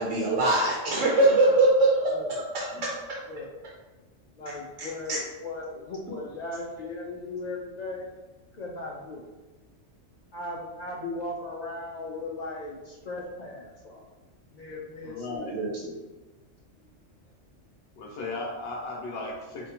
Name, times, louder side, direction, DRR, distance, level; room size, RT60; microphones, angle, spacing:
voice 1, 0.0-2.7 4.8-5.2 15.5-16.0, right 2 dB, 75° right, -4 dB, 1.0 m, -23 dB
voice 2, 2.0-2.4 3.3-3.6 4.4-8.1 8.6-9.2 10.3-14.0 14.5-15.5, left 2 dB, 75° left, -2 dB, 0.3 m, -37 dB
voice 3, 15.0-15.6 18.0-19.7, left 2 dB, 60° left, 0 dB, 0.8 m, -36 dB
5.2 x 2.2 x 2.8 m, 1.2 s
omnidirectional pair, 1.3 m